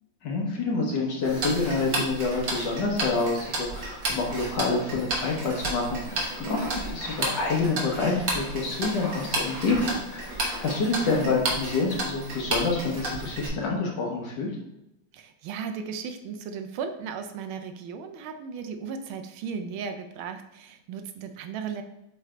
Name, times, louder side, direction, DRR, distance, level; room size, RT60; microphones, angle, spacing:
voice 1, 0.2-14.5, left 3 dB, 60° left, -1 dB, 1.6 m, -27 dB
Tick-tock, 1.2-13.5, right 2 dB, 45° right, 1.4 m, -32 dB
voice 2, 10.9-11.3 15.1-21.8, right 6 dB, 75° right, 7 dB, 1.4 m, -36 dB
7.7 x 3.4 x 3.7 m, 0.88 s
omnidirectional pair, 2.3 m